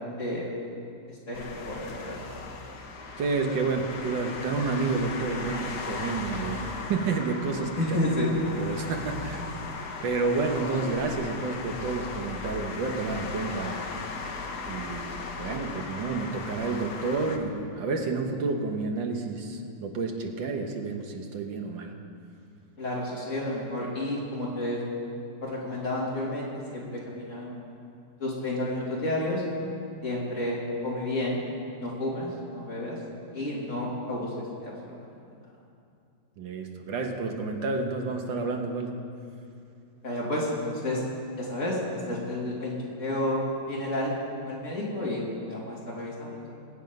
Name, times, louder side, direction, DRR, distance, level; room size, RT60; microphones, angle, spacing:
voice 1, 1.1-2.3 2.7-2.8 7.8-8.3 22.8-24.8 25.4-27.5 28.2-29.4 30.0-30.6 30.8-31.4 31.8-33.0 33.3-35.1 40.0-41.0 41.4-42.7 43.0-44.1 44.4-45.2 45.5-46.5, left 1 dB, 40° left, -5 dB, 3.2 m, -31 dB
sound 1, 1.3-17.4, left 4 dB, 60° left, 1.6 m, -37 dB
voice 2, 3.2-7.7 8.6-13.9 14.7-21.9 36.4-38.9, right 4 dB, 85° right, 3 dB, 1.9 m, -30 dB
21.0 x 8.3 x 5.4 m, 2.5 s
omnidirectional pair, 2.0 m